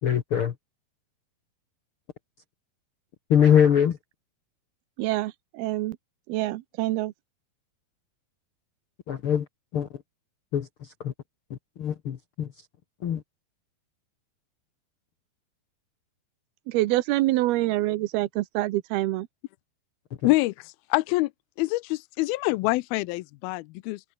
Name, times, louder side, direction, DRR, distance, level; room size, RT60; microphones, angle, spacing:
voice 1, 0.0-0.5 3.3-4.0 9.1-9.5 9.7-9.9 10.5-11.1 11.5-12.5 13.0-13.2 20.2-20.3, left 8 dB, 65° left, 1.3 m, -23 dB
voice 2, 5.0-6.0 6.3-7.1 16.7-19.3, right 17 dB, 85° right, 2.8 m, -26 dB
voice 3, 20.2-20.5 20.9-21.3 21.6-24.0, left 21 dB, 80° left, 2.5 m, -25 dB
omnidirectional pair, 4.4 m